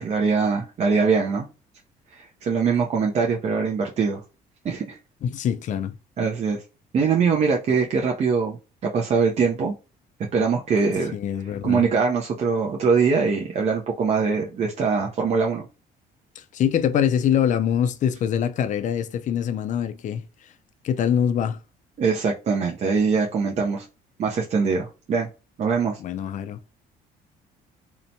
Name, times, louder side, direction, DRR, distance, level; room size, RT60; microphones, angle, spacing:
voice 1, 0.0-1.5 2.2-4.2 4.6-5.0 6.2-6.6 6.9-9.7 10.3-11.2 11.6-15.7 22.0-23.8 24.2-25.3 25.6-26.0, right 5 dB, 40° right, 0.5 m, -22 dB
voice 2, 5.2-5.9 11.1-11.9 16.4-20.2 20.8-21.6 26.0-26.6, left 9 dB, 50° left, 0.4 m, -24 dB
2.8 x 2.1 x 2.6 m
cardioid pair, 110°, 17 cm